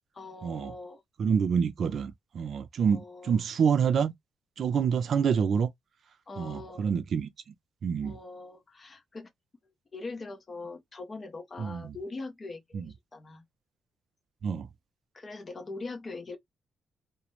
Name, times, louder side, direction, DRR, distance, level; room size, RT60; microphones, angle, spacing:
voice 1, 0.1-1.0 2.8-3.4 6.3-6.9 8.0-9.3 9.9-12.8 13.1-13.4 15.1-16.4, left 3 dB, 25° left, 0.6 m, -42 dB
voice 2, 1.2-4.1 4.6-5.7 6.4-7.3 7.8-8.1 11.6-11.9 12.7-12.8 14.4-14.7, right 6 dB, 50° right, 0.4 m, -27 dB
2.4 x 2.0 x 3.0 m
cardioid pair, 150°, 0 cm